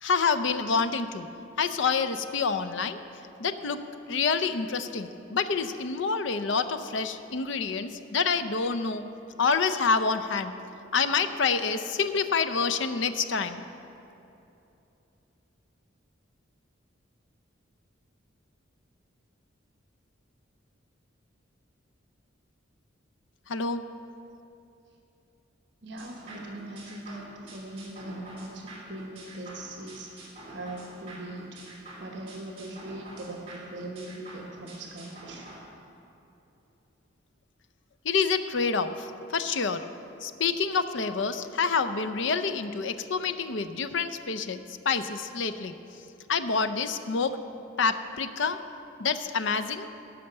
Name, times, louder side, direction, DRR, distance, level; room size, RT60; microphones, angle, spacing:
voice 1, 0.0-1.3 1.6-3.0 3.4-3.8 4.1-9.0 9.4-10.5 10.9-13.6 23.5-23.8 38.0-39.8 40.2-45.7 46.3-47.3 47.8-48.6 49.0-49.9, left 5 dB, 65° left, 10 dB, 0.6 m, -27 dB
voice 2, 25.8-31.6 32.0-35.5, right 1 dB, 60° right, 0 dB, 1.1 m, -41 dB
sound 1, 26.0-35.6, right 1 dB, 30° right, 2.4 m, -47 dB
16.0 x 5.8 x 6.6 m, 2.9 s
head